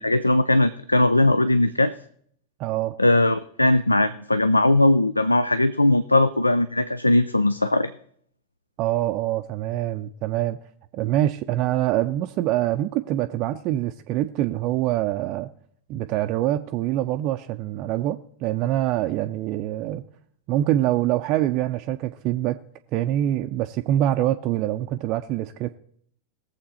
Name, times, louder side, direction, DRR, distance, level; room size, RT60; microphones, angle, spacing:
voice 1, 0.0-1.9 3.0-7.9, left 2 dB, 85° left, 0.4 m, -19 dB
voice 2, 2.6-3.0 8.8-10.6 10.9-15.5 15.9-20.1 20.5-22.6 22.9-25.8, right 13 dB, 40° right, 0.5 m, -25 dB
19.0 x 7.4 x 4.2 m
figure-of-eight pair, 90°, 0 cm